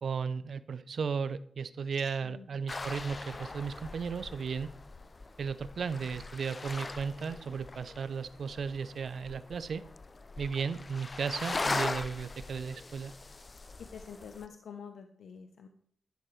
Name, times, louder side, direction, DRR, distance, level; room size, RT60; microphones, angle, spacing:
voice 1, 0.0-4.7 5.4-9.8 10.4-13.1, right 5 dB, 65° right, 15 dB, 0.5 m, -35 dB
sound 1, 2.7-14.5, left 3 dB, 35° left, 0.4 m, -40 dB
voice 2, 13.9-15.7, left 6 dB, 80° left, 6 dB, 0.7 m, -47 dB
11.0 x 10.5 x 3.2 m, 0.62 s
cardioid pair, 70°, 0 cm